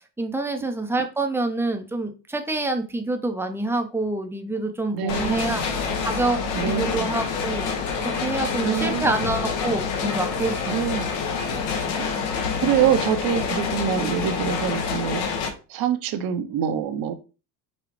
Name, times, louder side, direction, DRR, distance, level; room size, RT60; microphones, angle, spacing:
voice 1, 0.2-5.6 6.0-6.4 6.7-7.7 8.0-10.6 11.5-11.7, right 2 dB, 5° right, 5 dB, 0.5 m, -27 dB
voice 2, 4.9-5.6 6.5-7.1 8.6-9.2 10.7-11.1 12.6-17.1, right 9 dB, 50° right, 8 dB, 0.8 m, -25 dB
sound 1, 5.1-15.5, left 5 dB, 75° left, 1.1 m, -27 dB
5.1 x 2.4 x 3.1 m, 0.32 s
supercardioid pair, 100°, 47 cm